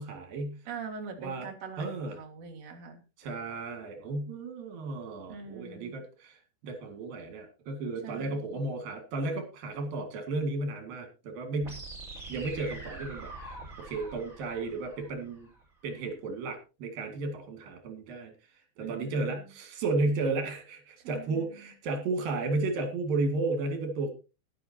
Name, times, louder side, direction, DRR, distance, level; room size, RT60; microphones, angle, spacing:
voice 1, 0.0-0.6 1.2-1.5 1.8-2.2 3.2-6.4 6.6-11.8 12.3-15.5 15.8-18.3 18.8-24.1, right 3 dB, 75° right, 5 dB, 4.0 m, -33 dB
voice 2, 0.6-3.0 5.3-5.9 8.0-8.7 18.8-19.5 21.0-21.7, right 6 dB, 50° right, 2 dB, 2.7 m, -43 dB
sound 1, 11.6-15.6, right 2 dB, 20° right, 4.8 m, -44 dB
15.0 x 11.0 x 2.9 m, 0.30 s
omnidirectional pair, 4.2 m